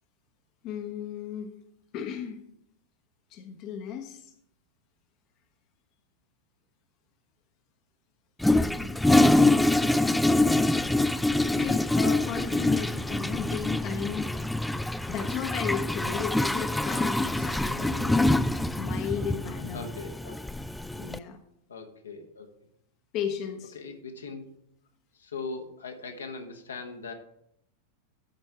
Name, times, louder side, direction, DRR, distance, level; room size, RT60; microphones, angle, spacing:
voice 1, 0.6-1.5 1.9-2.4 3.3-4.2 8.6-8.9 11.4-14.4 15.1-18.2 18.8-19.9 20.9-21.4 23.1-23.8, left 8 dB, 40° left, 6 dB, 0.8 m, -35 dB
Toilet flush, 8.4-21.2, left 2 dB, 5° left, 0.3 m, -25 dB
voice 2, 19.7-20.4 21.7-22.5 23.7-24.5 25.2-27.1, left 4 dB, 70° left, 4 dB, 1.1 m, -40 dB
12.0 x 4.4 x 4.8 m, 0.74 s
figure-of-eight pair, 90°, 0 cm